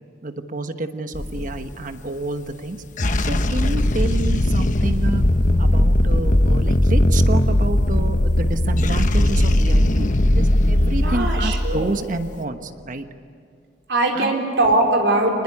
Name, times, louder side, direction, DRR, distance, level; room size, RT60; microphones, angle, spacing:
voice 1, 0.2-2.8 3.2-5.2 5.6-13.1 14.1-14.4, right 2 dB, 50° right, 8 dB, 1.3 m, -29 dB
sound 1, 1.1-1.8 2.8-12.2, left 1 dB, 45° left, 1.1 m, -18 dB
voice 2, 11.0-11.9 13.9-15.4, right 2 dB, 85° right, 0 dB, 4.5 m, -20 dB
27.5 x 20.5 x 9.8 m, 2.3 s
head